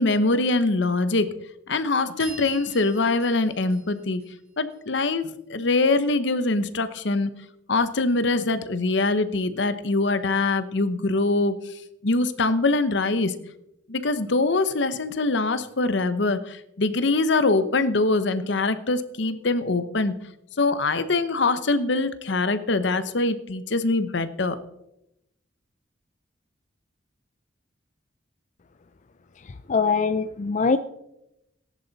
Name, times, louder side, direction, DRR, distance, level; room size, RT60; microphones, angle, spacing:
voice 1, 0.0-1.3 1.7-4.2 4.6-7.3 7.7-11.6 12.0-13.3 13.9-20.1 20.6-24.6, left 3 dB, 70° left, 12 dB, 1.0 m, -23 dB
sound 1, 2.2-4.8, right 3 dB, 35° right, 6.1 m, -44 dB
voice 2, 29.7-30.8, left 5 dB, 40° left, 11 dB, 0.5 m, -22 dB
18.0 x 10.5 x 4.1 m, 0.85 s
head